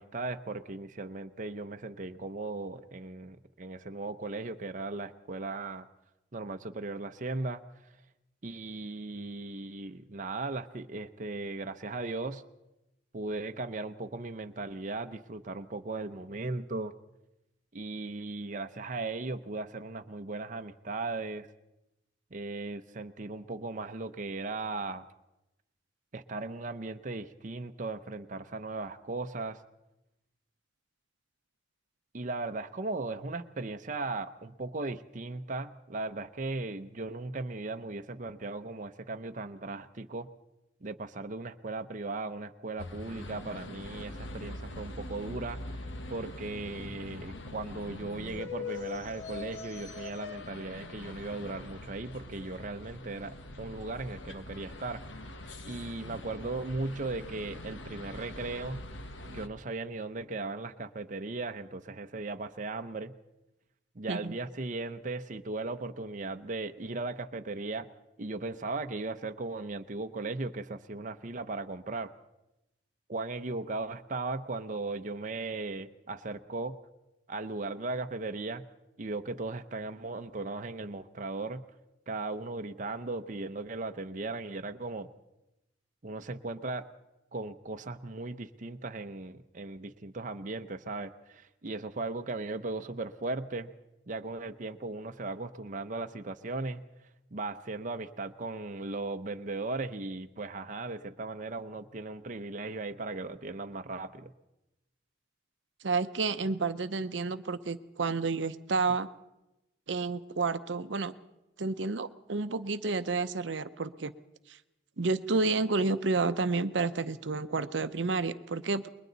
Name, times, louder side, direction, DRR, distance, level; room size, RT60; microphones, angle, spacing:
voice 1, 0.0-5.9 6.3-7.6 8.4-12.4 13.1-16.9 17.7-21.5 22.3-25.0 26.1-29.6 32.1-40.3 40.8-45.6 46.1-55.0 55.6-58.9 59.3-63.1 63.9-67.9 68.2-72.1 73.1-76.8 77.3-78.6 79.0-81.6 82.1-85.1 86.0-86.9 87.3-93.7 94.1-96.8 97.3-104.3, right 3 dB, 40° right, 7 dB, 0.7 m, -37 dB
sound 1, 42.8-59.5, left 2 dB, 80° left, 1.5 m, -43 dB
voice 2, 105.8-109.1 109.9-111.1 111.6-114.1 114.5-114.6 115.0-118.9, right 3 dB, 70° right, 11 dB, 0.7 m, -30 dB
29.5 x 21.5 x 4.0 m, 0.96 s
head